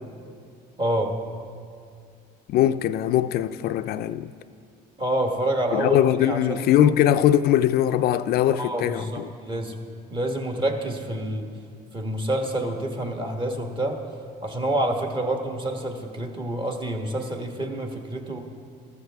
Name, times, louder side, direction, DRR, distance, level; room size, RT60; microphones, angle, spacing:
voice 1, 0.8-1.1 5.0-6.7 8.6-9.8 10.1-11.5 11.9-14.0 14.4-18.4, right 1 dB, 30° right, 1.4 m, -27 dB
voice 2, 2.5-4.3 5.7-9.3, left 11 dB, 70° left, 0.4 m, -21 dB
14.5 x 13.0 x 3.5 m
cardioid pair, 110°, 17 cm